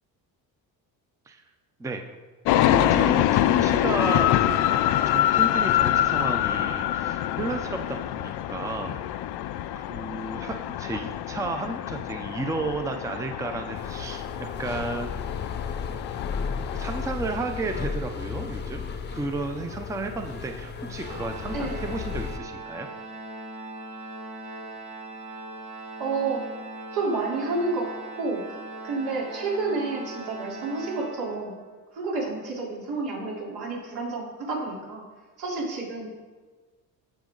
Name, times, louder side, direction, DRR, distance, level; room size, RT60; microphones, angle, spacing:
sound 1, 2.4-17.1, left 12 dB, 90° left, 0.6 m, -25 dB
voice 1, 2.7-4.7 5.1-9.0 9.8-15.1 16.5-18.8 19.1-22.9, right 3 dB, 10° right, 5 dB, 0.5 m, -33 dB
sound 2, 13.7-22.4, left 5 dB, 30° left, 0.7 m, -34 dB
Organ, 21.0-31.7, right 2 dB, 60° right, 3.5 m, -40 dB
voice 2, 21.5-21.8 26.0-26.5 26.9-31.6 31.9-35.0 35.4-36.1, right 3 dB, 80° right, -4 dB, 3.7 m, -30 dB
16.0 x 6.1 x 3.9 m, 1.3 s
cardioid pair, 150°, 38 cm